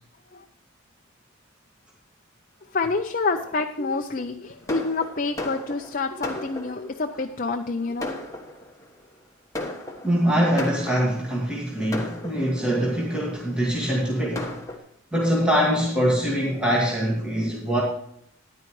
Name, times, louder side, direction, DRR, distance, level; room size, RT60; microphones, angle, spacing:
voice 1, 2.7-8.2, left 3 dB, 40° left, 4 dB, 0.6 m, -27 dB
Fireworks, 4.7-7.0 7.6-7.7 8.0-8.9 9.5-11.3 11.9-12.8 13.5-13.6 14.0-14.1 14.4-14.8, left 1 dB, 15° left, 1.4 m, -35 dB
voice 2, 10.0-14.6 15.1-17.8, equal, 5° right, -5 dB, 2.0 m, -23 dB
13.5 x 10.5 x 3.2 m, 0.72 s
head